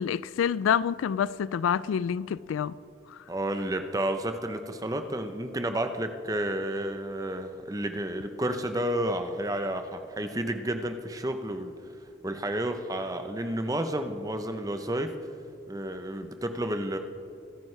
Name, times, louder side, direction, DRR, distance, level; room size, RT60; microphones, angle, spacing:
voice 1, 0.0-2.8 3.1-3.2, left 8 dB, 85° left, 0.3 m, -27 dB
voice 2, 3.3-11.7 12.2-15.1 15.7-17.0, right 1 dB, 20° right, 0.7 m, -31 dB
24.5 x 9.2 x 3.3 m
head